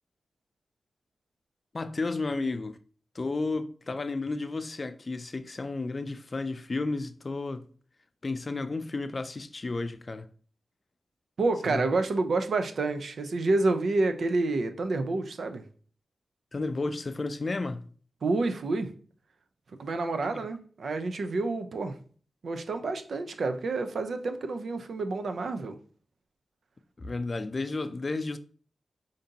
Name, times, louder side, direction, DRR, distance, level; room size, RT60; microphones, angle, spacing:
voice 1, 1.7-2.8 3.1-7.7 8.2-10.3 11.7-11.8 16.5-17.9 27.0-28.4, left 3 dB, 45° left, 0.4 m, -32 dB
voice 2, 11.4-15.6 18.2-18.9 19.8-21.9 22.4-25.8, right 3 dB, 75° right, 0.5 m, -28 dB
5.0 x 2.6 x 2.7 m
cardioid pair, 45°, 0 cm